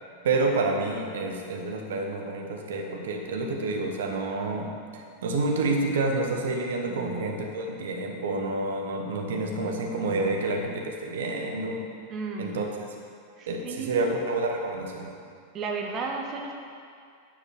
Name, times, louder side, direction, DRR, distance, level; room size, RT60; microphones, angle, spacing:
voice 1, 0.2-4.7 5.2-11.8 12.4-12.6 13.5-15.1, right 2 dB, 60° right, 2 dB, 1.1 m, -28 dB
voice 2, 6.9-7.2 12.1-12.5 13.4-14.1 15.5-16.5, right 4 dB, 30° right, 1 dB, 1.0 m, -34 dB
9.6 x 4.9 x 7.3 m, 2.3 s
figure-of-eight pair, 90°, 0 cm